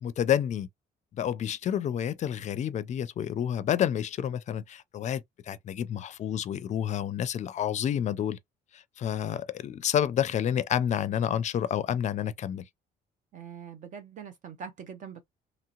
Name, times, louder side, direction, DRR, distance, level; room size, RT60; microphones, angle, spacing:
voice 1, 0.0-0.7 1.2-8.4 8.7-12.6, left 9 dB, 45° left, 0.4 m, -29 dB
voice 2, 13.3-15.2, right 7 dB, 50° right, 0.7 m, -43 dB
3.0 x 2.8 x 2.3 m
cardioid pair, 110°, 17 cm